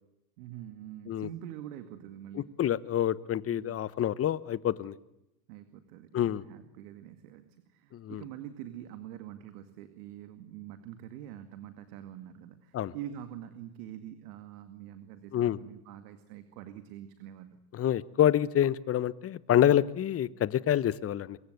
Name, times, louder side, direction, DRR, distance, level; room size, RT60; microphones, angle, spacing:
voice 1, 0.4-2.6 3.4-3.9 5.5-17.6, right 11 dB, 65° right, 10 dB, 2.3 m, -45 dB
voice 2, 2.3-5.0 6.1-6.4 7.9-8.2 12.7-12.9 15.3-15.6 17.7-21.4, left 11 dB, 30° left, 19 dB, 1.1 m, -27 dB
25.0 x 23.0 x 8.1 m, 0.86 s
hypercardioid pair, 95°, 49 cm